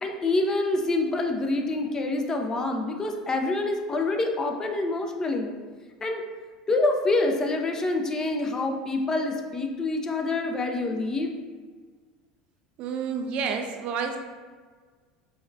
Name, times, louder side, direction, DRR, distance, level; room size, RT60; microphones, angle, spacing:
voice 1, 0.0-5.5 6.0-6.2 6.7-11.3, left 2 dB, 25° left, 3 dB, 0.5 m, -26 dB
voice 2, 12.8-14.2, right 6 dB, 50° right, 5 dB, 0.4 m, -29 dB
4.9 x 3.1 x 2.5 m, 1.5 s
figure-of-eight pair, 70°, 2 cm